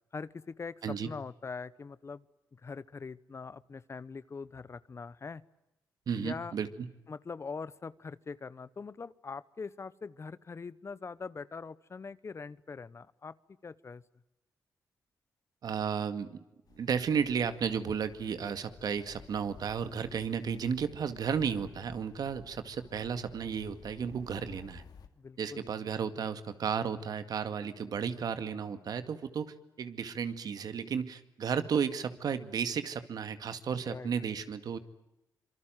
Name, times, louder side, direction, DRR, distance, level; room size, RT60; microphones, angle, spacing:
voice 1, 0.1-2.2 2.5-5.4 6.2-6.5 7.1-13.4 13.6-14.0 24.3-24.5 25.2-25.6 33.9-34.1, left 4 dB, 40° left, 18 dB, 1.0 m, -42 dB
voice 2, 6.1-6.9 15.6-16.4 16.8-24.8 25.4-34.8, right 7 dB, 70° right, 10 dB, 2.1 m, -33 dB
sound 1, 16.7-25.1, left 6 dB, 70° left, 2.6 m, -55 dB
26.5 x 23.5 x 9.2 m, 0.89 s
cardioid pair, 80°, 7 cm